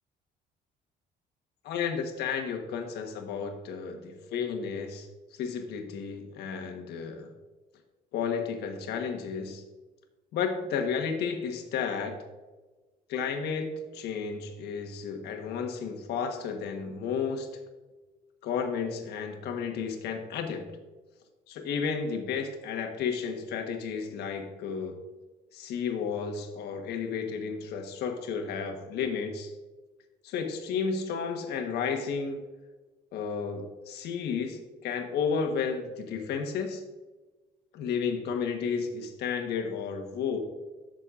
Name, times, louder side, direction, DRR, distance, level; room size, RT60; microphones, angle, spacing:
voice 1, 1.6-7.3 8.1-9.6 10.3-12.2 13.1-17.5 18.4-20.7 21.5-25.0 25.5-29.5 30.2-32.4 33.1-36.8 37.7-40.4, left 6 dB, 75° left, 5 dB, 1.3 m, -32 dB
12.5 x 6.4 x 2.5 m, 1.2 s
cardioid pair, 110°, 17 cm